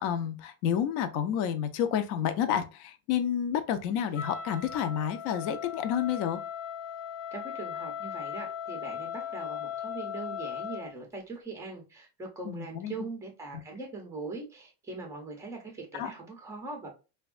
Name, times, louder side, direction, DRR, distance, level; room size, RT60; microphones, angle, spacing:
voice 1, 0.0-6.4 12.4-12.9 15.9-16.1, left 9 dB, 55° left, 0.5 m, -30 dB
Wind instrument woodwind instrument, 4.1-10.9, left 8 dB, 80° left, 1.2 m, -38 dB
voice 2, 7.3-16.9, right 3 dB, 5° right, 0.4 m, -41 dB
3.4 x 2.2 x 2.3 m
cardioid pair, 165°, 49 cm